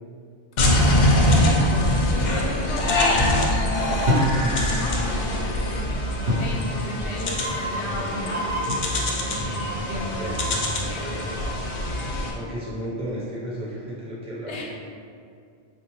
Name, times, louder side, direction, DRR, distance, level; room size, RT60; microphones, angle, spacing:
voice 1, 0.6-4.1 4.4-8.6 9.3-11.7 14.5-14.6, left 1 dB, 85° left, -2 dB, 0.9 m, -35 dB
sound 1, 0.6-12.3, left 1 dB, 55° left, 0.5 m, -23 dB
sound 2, 1.6-1.9 4.1-4.7 6.3-6.6 8.7-9.2, left 1 dB, 85° right, 1.0 m, -24 dB
sound 3, 7.3-12.8, right 2 dB, 60° right, 0.7 m, -34 dB
voice 2, 9.9-10.4 11.0-11.4 12.0-14.6, equal, 10° right, -7 dB, 0.4 m, -34 dB
3.4 x 2.5 x 3.0 m, 2.3 s
omnidirectional pair, 1.1 m